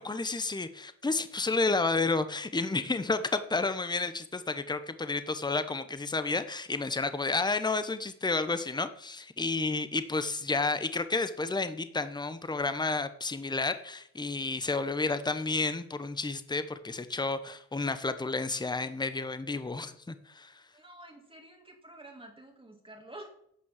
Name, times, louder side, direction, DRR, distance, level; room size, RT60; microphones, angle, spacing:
voice 1, 0.0-20.5, left 3 dB, 15° left, 12 dB, 1.0 m, -31 dB
voice 2, 20.7-23.3, right 1 dB, 15° right, 2 dB, 2.1 m, -49 dB
11.0 x 6.1 x 7.3 m, 0.71 s
cardioid pair, 75°, 33 cm